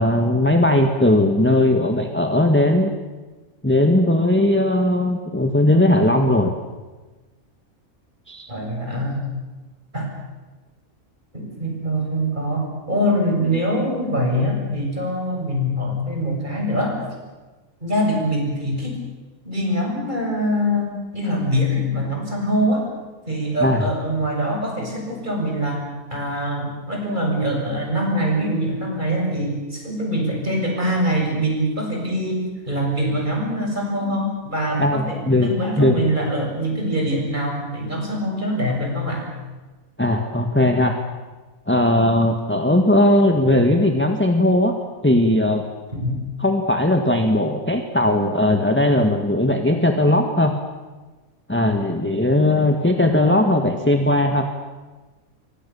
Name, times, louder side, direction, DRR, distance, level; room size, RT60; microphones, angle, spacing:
voice 1, 0.0-2.9 3.6-6.5 8.3-8.5 23.6-23.9 34.8-35.5 35.8-36.0 40.0-41.0 41.7-44.8 45.0-45.6 46.4-50.5 51.5-54.4, left 1 dB, 10° left, 4 dB, 1.8 m, -18 dB
voice 2, 8.5-9.2 9.9-10.1 11.3-17.0 17.8-19.0 19.4-22.9 23.2-25.8 26.1-39.3 46.0-46.1, equal, 35° right, 0 dB, 7.6 m, -23 dB
28.5 x 24.5 x 7.2 m, 1.2 s
omnidirectional pair, 1.5 m